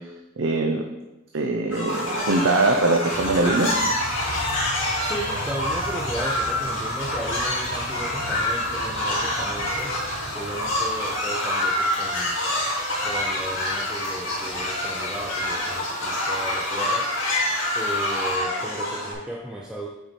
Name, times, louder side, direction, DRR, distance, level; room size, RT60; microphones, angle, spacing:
voice 1, 0.4-0.8 1.3-3.7, right 2 dB, 60° right, 2 dB, 0.5 m, -22 dB
sound 1, 1.7-19.1, left 1 dB, 65° left, 2.3 m, -26 dB
sound 2, 1.9-18.4, right 1 dB, 80° right, 1.4 m, -39 dB
voice 2, 4.9-10.0 10.3-12.4 13.0-17.1 17.7-19.9, right 1 dB, 5° right, -2 dB, 0.4 m, -35 dB
6.1 x 4.8 x 4.3 m, 1.0 s
head